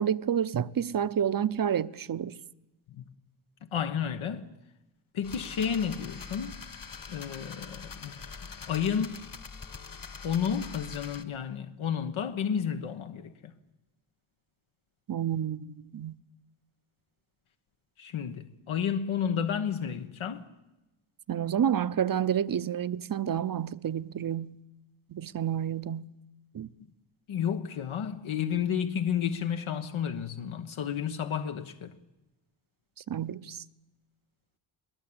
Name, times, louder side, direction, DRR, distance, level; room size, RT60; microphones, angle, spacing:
voice 1, 0.0-2.4 15.1-16.2 21.3-24.6 25.1-26.1 26.5-26.7 33.1-33.6, right 9 dB, 45° right, 0.8 m, -29 dB
voice 2, 3.7-4.5 5.1-6.6 7.1-8.1 8.7-9.2 10.2-13.5 18.0-20.4 27.3-31.9, left 8 dB, 80° left, 1.4 m, -31 dB
sound 1, 5.2-11.2, left 5 dB, 45° left, 2.0 m, -44 dB
22.0 x 19.5 x 8.8 m
cardioid pair, 75°, 47 cm